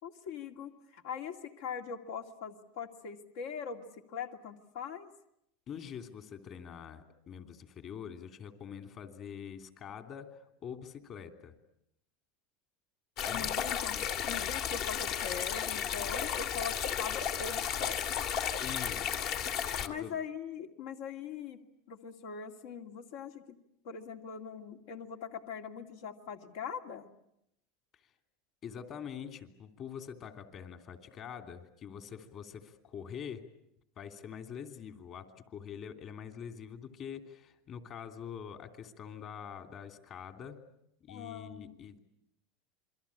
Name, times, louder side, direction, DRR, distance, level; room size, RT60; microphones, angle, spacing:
voice 1, 0.0-5.1 13.3-14.0 14.3-18.0 19.9-21.6 21.9-23.6 23.8-27.1 41.1-41.8, left 7 dB, 75° left, 5 dB, 2.5 m, -42 dB
voice 2, 5.7-11.5 13.2-13.5 18.4-19.1 19.8-20.1 28.6-33.5 34.0-40.6 41.0-42.0, left 8 dB, 40° left, 7 dB, 3.0 m, -45 dB
sound 1, 13.2-19.9, left 8 dB, 55° left, 2.1 m, -33 dB
28.0 x 23.0 x 8.7 m, 0.77 s
supercardioid pair, 130°, 0 cm